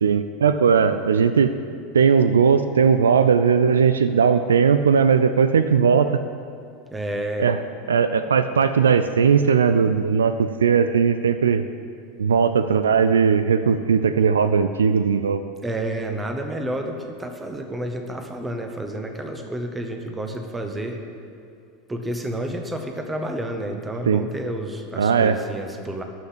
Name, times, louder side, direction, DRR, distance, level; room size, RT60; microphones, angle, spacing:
voice 1, 0.0-1.5 1.9-6.2 7.4-7.6 7.9-11.6 12.2-15.4 24.1-24.2 25.0-25.4, right 6 dB, 75° right, 11 dB, 0.4 m, -18 dB
voice 2, 6.9-7.5 15.6-21.0 21.9-26.0, right 1 dB, 15° right, 4 dB, 1.4 m, -30 dB
13.0 x 5.8 x 8.6 m, 2.4 s
figure-of-eight pair, 80°, 0 cm